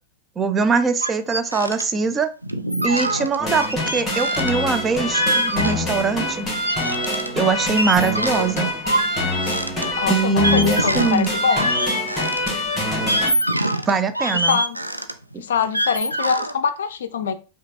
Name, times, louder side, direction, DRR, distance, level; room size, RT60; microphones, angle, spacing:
voice 1, 0.4-2.3 2.8-6.5 7.3-8.7 10.1-11.3 13.9-14.6 15.3-15.4, right 4 dB, 20° right, 9 dB, 0.4 m, -22 dB
sound 1, 1.0-1.8 2.1-2.2 2.4-6.2 6.5-12.5 12.9-16.6, right 1 dB, 90° right, 0.3 m, -24 dB
sound 2, 3.4-13.3, left 1 dB, 15° left, 1.6 m, -25 dB
voice 2, 10.0-11.7 14.3-14.8 15.4-17.3, left 6 dB, 60° left, 11 dB, 0.4 m, -24 dB
5.0 x 2.5 x 2.6 m, 0.32 s
figure-of-eight pair, 90°, 0 cm